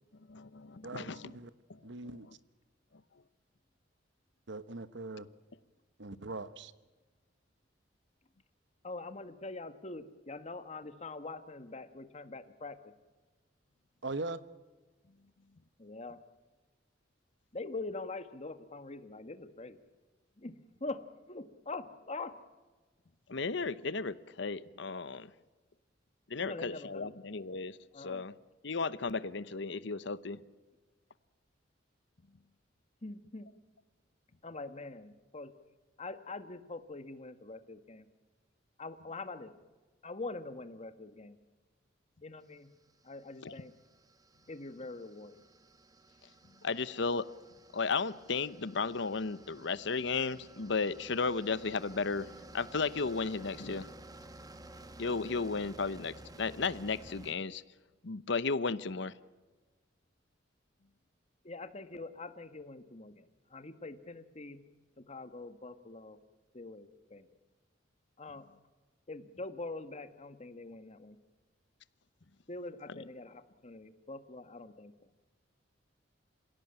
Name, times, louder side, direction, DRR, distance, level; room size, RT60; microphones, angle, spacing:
voice 1, 0.3-1.3 1.7-1.8 23.3-25.3 26.3-28.3 28.6-30.4 43.4-43.5 46.6-47.3 47.7-52.3 52.5-53.9 55.0-57.6 58.0-59.1 72.9-73.0, left 4 dB, 70° left, 16 dB, 0.9 m, -34 dB
voice 2, 0.8-1.5 1.8-2.3 4.5-5.3 6.0-6.7 14.0-14.4, right 2 dB, 65° right, 14 dB, 1.1 m, -40 dB
voice 3, 8.8-12.8 15.8-16.2 17.5-19.8 20.4-20.5 20.8-21.0 21.3-22.3 26.4-27.1 27.9-28.2 33.0-33.5 34.4-35.5 36.0-38.1 38.8-39.5 40.0-41.4 42.2-42.7 43.0-43.7 44.5-45.4 61.4-64.6 65.1-66.2 66.5-67.3 68.2-68.4 69.1-71.2 72.5-74.9, left 3 dB, 35° left, 10 dB, 1.5 m, -44 dB
sound 1, 42.6-57.3, right 1 dB, 20° right, 1.5 m, -54 dB
27.5 x 17.0 x 8.9 m, 1.3 s
head